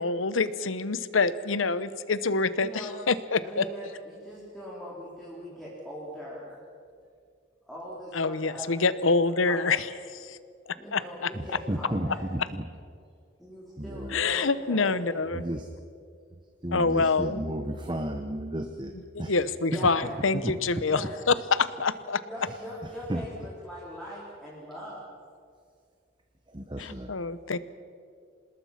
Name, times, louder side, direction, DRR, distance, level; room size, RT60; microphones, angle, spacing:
voice 1, 0.0-3.7 8.1-9.9 10.1-10.4 10.7-11.3 14.1-15.4 16.7-17.4 19.2-22.2 26.8-27.6, left 4 dB, 90° left, 15 dB, 0.9 m, -26 dB
voice 2, 2.6-3.0 3.4-6.6 7.7-9.8 10.8-12.3 13.4-15.2 19.6-20.2 20.9-21.2 22.2-25.1, equal, ahead, -7 dB, 4.1 m, -41 dB
voice 3, 11.3-12.6 13.8-14.2 15.3-15.7 16.6-18.9 19.2-19.3 19.7-20.5 22.5-22.6 23.1-23.3 26.5-27.1, right 1 dB, 25° right, 5 dB, 1.1 m, -33 dB
26.0 x 20.0 x 5.9 m, 2.2 s
head